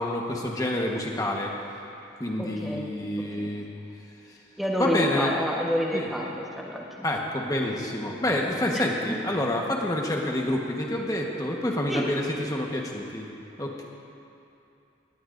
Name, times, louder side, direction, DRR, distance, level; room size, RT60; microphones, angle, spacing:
voice 1, 0.0-1.5 2.2-3.7 4.8-5.3 5.9-6.1 7.0-13.3 13.6-13.8, left 1 dB, 20° left, -1 dB, 1.2 m, -28 dB
voice 2, 2.4-2.9 3.4-3.5 4.6-6.3 6.6-7.0 8.7-8.8 11.9-12.1, equal, ahead, -3 dB, 1.2 m, -28 dB
18.5 x 17.5 x 2.6 m, 2.7 s
head